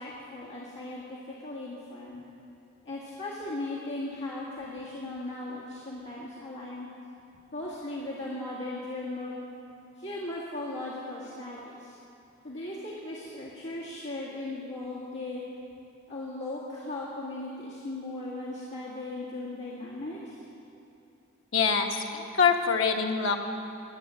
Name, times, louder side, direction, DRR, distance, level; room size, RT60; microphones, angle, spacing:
voice 1, 0.0-2.2 2.8-6.9 7.5-9.4 10.0-12.0 12.4-15.4 16.1-20.4, left 2 dB, 60° left, -7 dB, 2.0 m, -37 dB
voice 2, 21.5-23.4, left 5 dB, 85° left, 2 dB, 1.3 m, -25 dB
21.0 x 8.5 x 6.3 m, 2.8 s
head